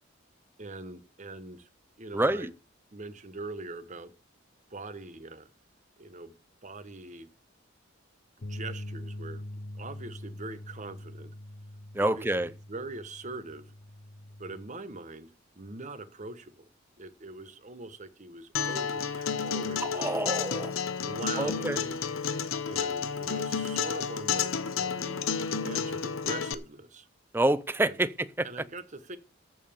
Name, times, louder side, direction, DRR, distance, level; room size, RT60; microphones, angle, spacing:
voice 1, 0.6-1.7 2.0-2.5 2.9-4.1 4.7-5.5 6.0-6.3 6.6-7.3 8.5-9.4 9.8-11.3 12.0-12.3 12.7-13.7 14.4-15.3 15.6-16.7 17.0-20.3 21.0-22.0 22.6-25.3 25.6-27.1 27.8-27.9 28.4-29.2, right 3 dB, 35° right, 1.2 m, -42 dB
voice 2, 2.1-2.5 11.9-12.5 19.8-20.8 21.4-21.8 27.3-28.7, right 1 dB, 10° right, 0.5 m, -28 dB
sound 1, 8.4-14.7, left 1 dB, 50° left, 0.9 m, -43 dB
Acoustic guitar, 18.5-26.5, left 6 dB, 85° left, 0.9 m, -31 dB
14.0 x 5.7 x 6.8 m
head